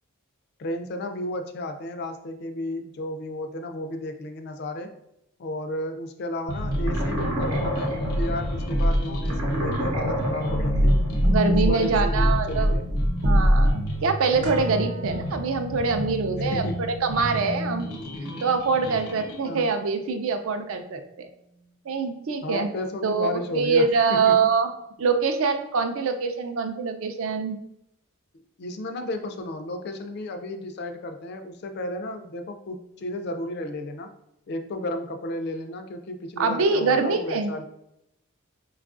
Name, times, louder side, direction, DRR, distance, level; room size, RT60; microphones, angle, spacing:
voice 1, 0.6-4.9 5.4-11.0 11.5-12.9 16.5-16.9 19.4-19.7 22.4-23.8 24.1-24.4 28.6-34.1 34.5-37.6, left 1 dB, 45° left, 7 dB, 0.3 m, -33 dB
sound 1, 6.5-19.4, left 1 dB, 85° left, 0.7 m, -32 dB
sound 2, 6.6-13.7, equal, 85° right, 0.8 m, -23 dB
voice 2, 11.2-12.7 13.2-16.6 17.0-17.9 18.4-21.3 21.9-22.7 23.0-24.7 25.0-27.6 36.4-37.5, right 4 dB, 65° right, 7 dB, 0.4 m, -24 dB
sound 3, 14.4-22.5 22.8-22.9, right 3 dB, 40° right, 0.8 m, -44 dB
4.5 x 2.4 x 2.4 m, 0.82 s
head